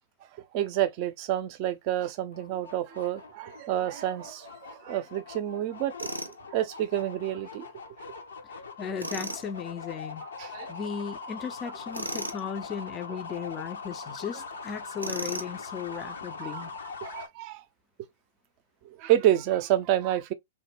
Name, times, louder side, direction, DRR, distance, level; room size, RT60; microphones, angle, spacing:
voice 1, 0.4-7.7 10.4-10.7 15.9-16.1 16.4-16.7 17.0-17.6 18.8-20.3, right 12 dB, 40° right, 0.5 m, -29 dB
sound 1, 2.3-17.3, left 4 dB, 70° left, 0.6 m, -42 dB
Tools, 6.0-6.4 9.0-9.4 11.9-12.4 15.0-15.6, right 1 dB, 90° right, 0.5 m, -35 dB
voice 2, 8.4-10.3 10.7-16.7, left 7 dB, 25° left, 0.4 m, -36 dB
3.0 x 2.1 x 3.3 m
figure-of-eight pair, 110°, 0 cm